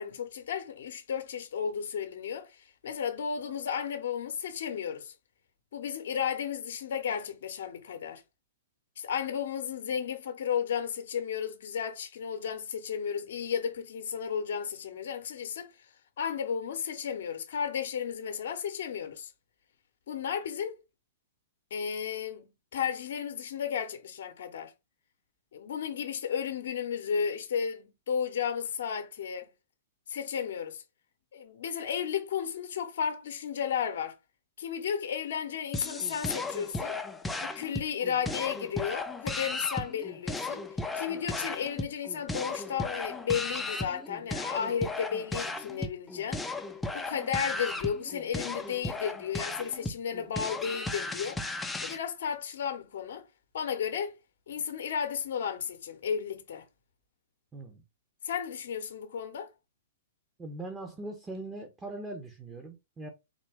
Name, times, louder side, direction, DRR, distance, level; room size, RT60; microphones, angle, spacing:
voice 1, 0.0-5.1 5.7-8.2 9.0-15.7 16.2-19.3 20.1-20.8 21.7-24.7 25.5-29.5 30.1-30.8 31.3-34.2 34.6-37.0 37.4-40.7 40.9-46.4 46.9-51.4 51.8-53.3 53.5-54.2 54.5-56.6 58.2-59.5, left 7 dB, 70° left, 0.8 m, -33 dB
sound 1, 35.7-52.0, left 2 dB, 10° left, 0.4 m, -36 dB
voice 2, 57.5-57.8 60.4-63.1, right 2 dB, 15° right, 0.8 m, -41 dB
3.8 x 2.2 x 3.5 m
hypercardioid pair, 125°, 0 cm